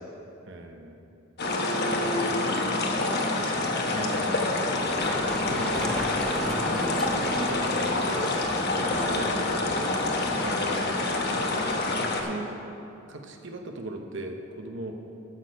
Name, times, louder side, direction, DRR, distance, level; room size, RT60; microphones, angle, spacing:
voice 1, 0.4-1.0 3.8-4.5 4.8-5.2 5.5-9.9 10.4-11.2 12.0-12.6 13.1-15.0, right 2 dB, 65° right, 4 dB, 0.9 m, -38 dB
sound 1, 1.4-12.2, left 2 dB, 55° left, 1.0 m, -27 dB
voice 2, 2.8-4.1 8.9-9.2 11.0-11.4, left 2 dB, 25° left, 0 dB, 1.2 m, -43 dB
Run, 4.7-12.3, equal, 5° left, 0.6 m, -39 dB
12.0 x 6.5 x 5.3 m, 2.7 s
head